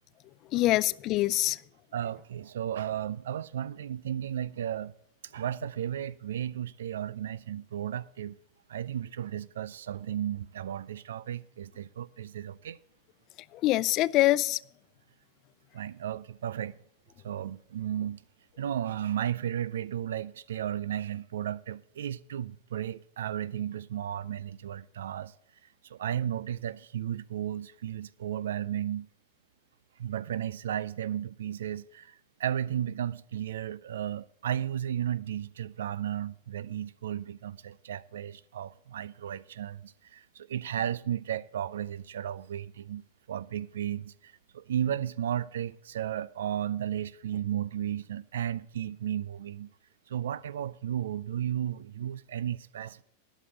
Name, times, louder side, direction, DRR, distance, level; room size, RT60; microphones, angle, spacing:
voice 1, 0.5-1.6 13.6-14.6, left 16 dB, 45° left, 0.3 m, -24 dB
voice 2, 1.9-4.9 5.3-8.4 8.7-12.8 15.7-16.8 17.2-18.2 18.6-25.3 25.9-29.1 30.0-32.1 32.4-43.0 43.3-49.7 50.1-53.0, right 10 dB, 85° right, 0.4 m, -34 dB
11.5 x 6.2 x 7.6 m
hypercardioid pair, 120°, 0 cm